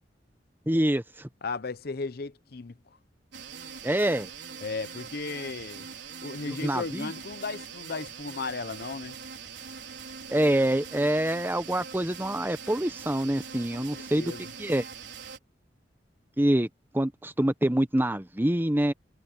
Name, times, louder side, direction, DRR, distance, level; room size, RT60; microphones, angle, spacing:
voice 1, 0.7-1.3 3.8-4.3 6.5-7.1 10.3-14.3 14.6-14.8 16.4-16.7 16.9-18.9, right 1 dB, 10° right, 0.9 m, -26 dB
voice 2, 1.4-2.7 4.6-5.8 6.2-9.2 13.7-14.5, left 4 dB, 60° left, 0.8 m, -35 dB
sound 1, 3.3-15.4, right 6 dB, 85° right, 4.1 m, -42 dB
head